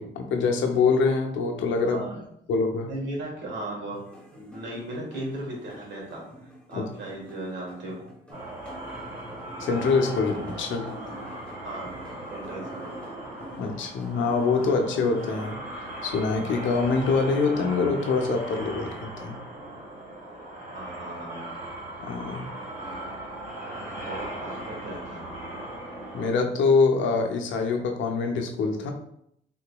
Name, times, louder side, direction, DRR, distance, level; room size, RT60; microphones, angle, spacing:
voice 1, 0.0-2.0 2.5-2.9 6.7-6.9 9.6-10.8 13.6-19.4 22.0-22.5 26.1-28.9, left 4 dB, 70° left, 4 dB, 0.6 m, -25 dB
voice 2, 1.8-2.2 2.8-4.0 4.3-8.1 10.7-11.2 11.6-11.9 12.3-13.0 20.7-21.4 24.0-25.2, right 1 dB, 65° right, -3 dB, 1.5 m, -37 dB
sound 1, 3.9-15.5, equal, 5° left, 0.8 m, -48 dB
sound 2, 8.3-26.3, right 1 dB, 35° right, 1.2 m, -38 dB
3.7 x 2.8 x 2.2 m, 0.74 s
cardioid pair, 90°, 20 cm